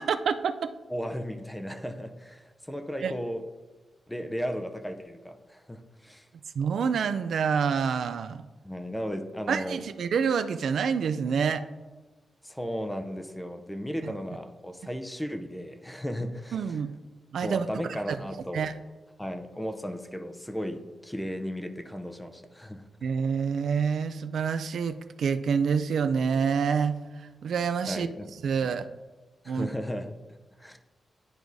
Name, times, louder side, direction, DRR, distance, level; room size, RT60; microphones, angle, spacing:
voice 1, 0.0-0.7 3.0-3.1 6.6-8.4 9.5-11.6 14.0-14.1 16.5-16.9 17.3-18.2 18.5-18.7 23.0-27.0 27.4-28.1 28.4-28.8 29.5-29.7, right 6 dB, 80° right, 10 dB, 0.3 m, -27 dB
voice 2, 0.9-3.4 4.1-6.3 8.6-9.8 12.4-16.8 17.4-18.7 19.2-22.8 27.9-28.3 28.6-28.7 29.4-30.2 30.6-30.8, equal, 5° left, 6 dB, 0.5 m, -35 dB
10.5 x 4.7 x 2.6 m, 1.2 s
wide cardioid pair, 130°, 0 cm